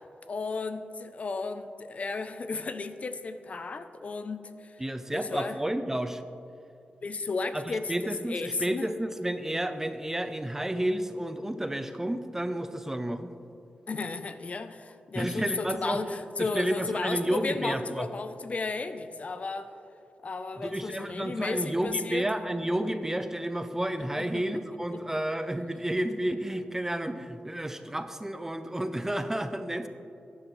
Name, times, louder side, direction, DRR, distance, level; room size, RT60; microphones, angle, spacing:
voice 1, 0.3-4.8 5.1-5.6 7.0-8.9 13.9-19.7 20.2-22.3 24.2-24.4 24.9-25.0, left 3 dB, 45° left, 10 dB, 0.5 m, -34 dB
voice 2, 4.8-6.2 7.5-13.3 15.1-16.0 16.4-18.1 20.6-29.9, right 1 dB, 15° right, 9 dB, 0.5 m, -31 dB
11.5 x 9.6 x 3.1 m, 2.7 s
wide cardioid pair, 90°, 3 cm